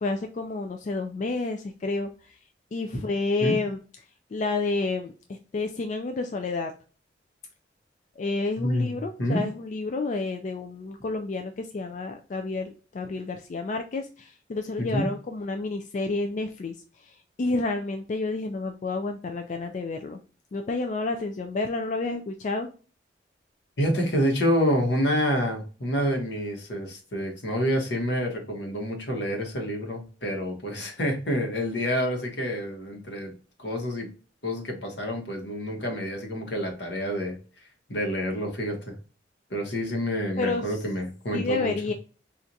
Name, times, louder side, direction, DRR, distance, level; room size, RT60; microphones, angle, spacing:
voice 1, 0.0-2.4 2.7-3.8 4.3-6.7 8.2-20.2 20.5-22.7 40.4-40.8 41.3-41.9, left 3 dB, 45° left, 5 dB, 0.3 m, -30 dB
voice 2, 8.6-9.4 14.8-15.1 23.8-33.3 33.6-34.1 34.4-37.4 37.9-39.0 39.5-41.7, equal, 75° left, 3 dB, 1.2 m, -28 dB
4.4 x 2.4 x 2.6 m, 0.37 s
head